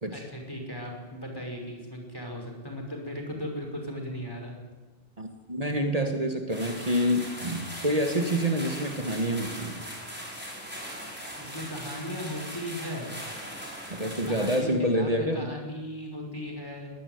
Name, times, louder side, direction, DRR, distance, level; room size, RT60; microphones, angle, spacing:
voice 1, 0.1-4.5 11.4-13.2 14.0-16.9, left 1 dB, 20° left, 1 dB, 5.5 m, -37 dB
voice 2, 5.2-9.8 13.9-15.5, equal, 35° right, 4 dB, 1.8 m, -27 dB
sound 1, 6.5-14.6, equal, 10° right, 6.5 m, -40 dB
21.5 x 17.5 x 9.5 m, 1.3 s
omnidirectional pair, 1.0 m